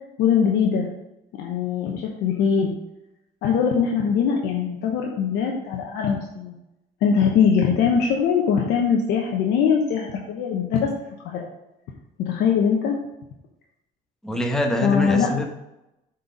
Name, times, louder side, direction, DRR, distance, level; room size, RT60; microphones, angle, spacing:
voice 1, 0.2-0.9 1.4-2.7 3.4-6.5 7.0-10.9 11.2-11.5 12.2-13.0 14.8-15.3, left 6 dB, 85° left, 0 dB, 1.0 m, -21 dB
voice 2, 14.2-15.5, left 2 dB, 5° left, 2 dB, 1.2 m, -24 dB
7.7 x 4.5 x 5.2 m, 0.90 s
cardioid pair, 110°, 17 cm